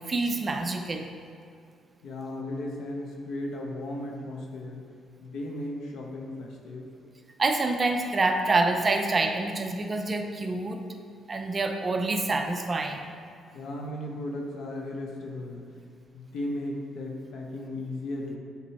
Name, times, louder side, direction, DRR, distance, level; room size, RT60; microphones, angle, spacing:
voice 1, 0.1-1.1 7.4-10.9 11.3-13.1, right 2 dB, 35° right, 4 dB, 0.5 m, -27 dB
voice 2, 2.0-4.9 5.2-6.9 13.5-15.7 16.1-18.4, left 1 dB, 80° left, 0 dB, 0.9 m, -36 dB
7.2 x 3.0 x 4.3 m, 2.4 s
cardioid pair, 90°, 0 cm